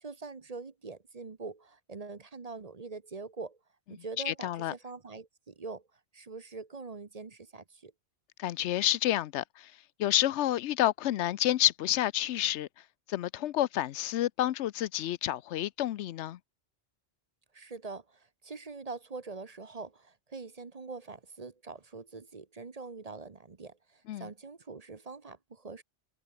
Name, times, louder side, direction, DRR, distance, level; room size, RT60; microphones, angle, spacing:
voice 1, 0.0-3.6 3.9-5.9 6.1-7.9 17.5-25.8, right 4 dB, 35° right, 1.0 m, -44 dB
voice 2, 4.3-4.7 8.4-9.7 10.0-12.7 13.1-16.4 24.1-24.3, left 13 dB, 85° left, 0.9 m, -29 dB
omnidirectional pair, 1.1 m